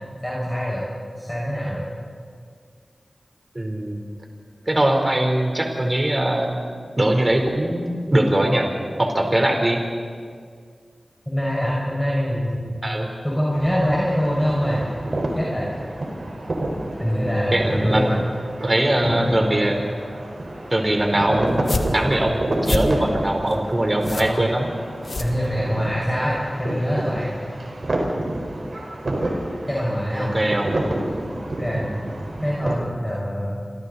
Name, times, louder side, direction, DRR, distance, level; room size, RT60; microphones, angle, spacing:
voice 1, 0.2-0.8 1.2-1.8 11.3-12.8 13.2-14.9 15.3-15.7 17.0-18.2 19.0-19.3 24.1-24.4 25.2-27.3 29.7-30.3 31.6-31.8 32.4-33.6, equal, 10° left, -5 dB, 6.0 m, -24 dB
voice 2, 3.6-4.1 4.7-6.6 7.0-8.7 9.0-9.8 12.8-13.1 17.0-18.2 18.6-19.8 20.7-21.7 21.9-24.7 29.9-30.8 31.7-32.0, right 1 dB, 35° right, 2 dB, 3.8 m, -21 dB
sound 1, 13.5-32.7, right 1 dB, 70° right, 4.7 m, -29 dB
sound 2, 21.5-26.0, left 2 dB, 70° left, 2.0 m, -29 dB
28.0 x 25.5 x 4.1 m, 2.1 s
cardioid pair, 45°, 0 cm